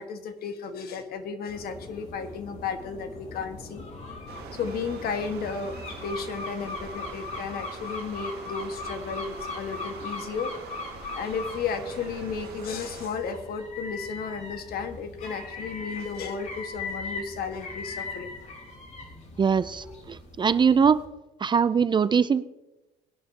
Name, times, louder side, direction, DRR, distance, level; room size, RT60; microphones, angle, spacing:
voice 1, 0.0-3.8 4.5-10.5 11.2-18.3, left 5 dB, 65° left, 7 dB, 1.6 m, -33 dB
sound 1, 1.5-21.1, left 3 dB, 45° left, 3.2 m, -40 dB
Stream, 4.3-13.1, right 7 dB, 70° right, 1.7 m, -44 dB
voice 2, 19.4-21.0 21.4-22.4, right 6 dB, 25° right, 15 dB, 0.5 m, -22 dB
20.0 x 11.0 x 2.9 m, 1.0 s
cardioid pair, 110°, 17 cm